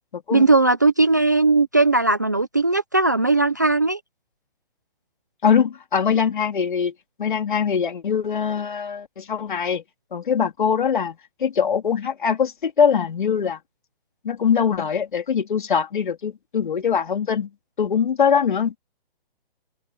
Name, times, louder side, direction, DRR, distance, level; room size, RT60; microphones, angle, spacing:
voice 1, 0.3-4.0, right 3 dB, 20° right, 0.5 m, -18 dB
voice 2, 5.4-6.9 7.2-9.8 10.1-13.6 14.2-17.5 17.8-18.7, left 7 dB, 55° left, 3.7 m, -22 dB
hypercardioid pair, 180°, 30 cm